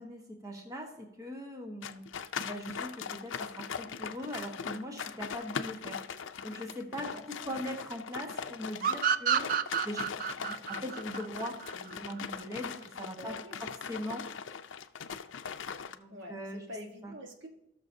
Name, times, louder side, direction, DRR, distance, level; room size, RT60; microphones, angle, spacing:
voice 1, 0.0-2.0 2.4-6.0 6.4-9.5 9.8-13.3 13.9-14.3 16.0-16.6 17.0-17.1, equal, 15° right, 2 dB, 1.2 m, -41 dB
sound 1, 1.8-16.0, left 6 dB, 75° left, 0.5 m, -40 dB
voice 2, 7.0-7.5 13.1-13.6 13.9-14.0 16.1-17.5, left 1 dB, 70° right, 3 dB, 1.4 m, -46 dB
sound 2, 8.8-12.2, right 7 dB, 45° right, 0.4 m, -30 dB
18.0 x 6.4 x 2.7 m, 0.86 s
head